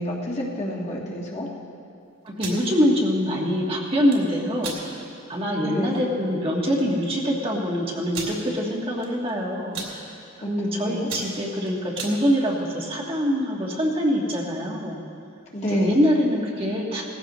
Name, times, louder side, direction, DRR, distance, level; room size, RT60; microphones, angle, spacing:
voice 1, 0.0-1.5 5.6-6.0 10.4-11.1 15.5-16.0, equal, 35° left, -3 dB, 1.6 m, -29 dB
voice 2, 2.2-5.0 5.3-10.1 10.5-15.0 15.7-17.0, equal, 25° right, -2 dB, 1.5 m, -24 dB
sound 1, 2.3-2.6 3.9-4.2 4.6-4.8 5.3-5.4 5.8-6.0 6.8-6.9 7.1-7.2 8.1-8.4 9.0-9.3 9.6-9.9 10.5-10.7 11.0-12.2, right 4 dB, 80° right, 2.8 m, -34 dB
18.5 x 15.0 x 3.0 m, 2.5 s
head